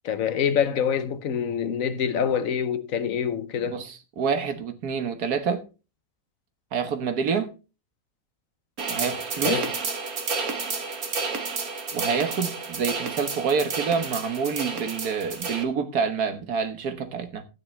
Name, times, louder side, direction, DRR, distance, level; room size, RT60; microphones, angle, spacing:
voice 1, 0.0-3.8 9.4-9.7, left 7 dB, 65° left, 1.2 m, -26 dB
voice 2, 3.6-5.7 6.7-7.5 8.9-9.6 11.9-17.5, right 6 dB, 90° right, 1.8 m, -27 dB
sound 1, 8.8-15.6, right 4 dB, 70° right, 1.9 m, -30 dB
12.0 x 9.7 x 3.2 m
omnidirectional pair, 1.6 m